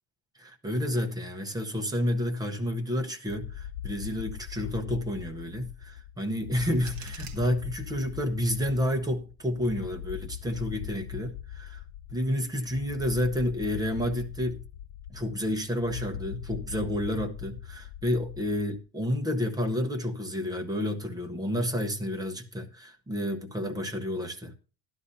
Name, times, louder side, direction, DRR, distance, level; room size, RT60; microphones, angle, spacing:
voice 1, 0.4-11.8 12.1-14.6 15.1-24.5, left 1 dB, 10° right, 0.8 m, -30 dB
sound 1, 3.3-18.8, left 10 dB, 75° left, 0.6 m, -41 dB
sound 2, 6.3-8.2, right 6 dB, 45° right, 1.7 m, -50 dB
12.5 x 11.5 x 2.7 m
cardioid pair, 170°, 50 cm